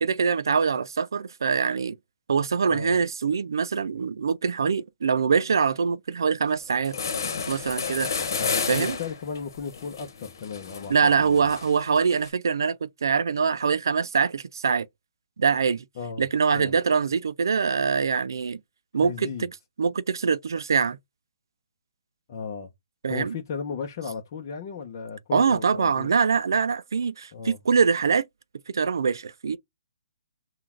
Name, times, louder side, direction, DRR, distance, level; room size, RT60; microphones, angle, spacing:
voice 1, 0.0-2.0 2.3-7.0 7.5-8.1 8.7-9.0 10.9-14.9 15.4-15.8 16.2-18.6 18.9-19.5 19.8-21.0 23.0-23.3 25.3-28.2 28.7-29.6, right 6 dB, 80° right, 0.4 m, -24 dB
voice 2, 2.7-3.0 8.4-11.5 16.0-16.3 16.5-16.7 19.0-19.5 22.3-22.7 23.1-26.1 27.3-27.6, left 6 dB, 40° left, 0.8 m, -35 dB
sound 1, 6.5-6.6 6.8-12.3, left 5 dB, 70° left, 1.1 m, -32 dB
3.8 x 2.4 x 4.5 m
hypercardioid pair, 150°, 2 cm